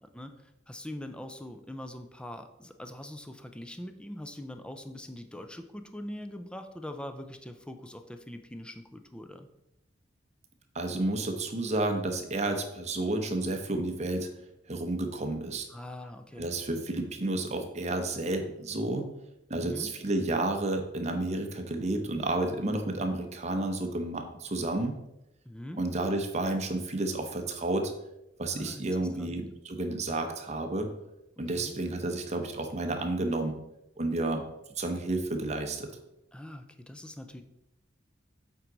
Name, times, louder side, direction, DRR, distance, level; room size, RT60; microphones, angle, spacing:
voice 1, 0.0-9.5 15.7-16.5 19.5-19.9 25.4-25.8 28.5-28.9 29.2-29.4 31.5-31.8 36.3-37.4, left 1 dB, 5° left, 7 dB, 0.5 m, -43 dB
voice 2, 10.7-14.3 14.7-15.7 16.4-19.1 19.5-25.0 25.8-27.9 28.4-30.9 31.4-33.5 34.0-34.4 34.8-35.9, right 2 dB, 40° right, 5 dB, 0.9 m, -31 dB
7.7 x 4.7 x 3.9 m, 0.89 s
head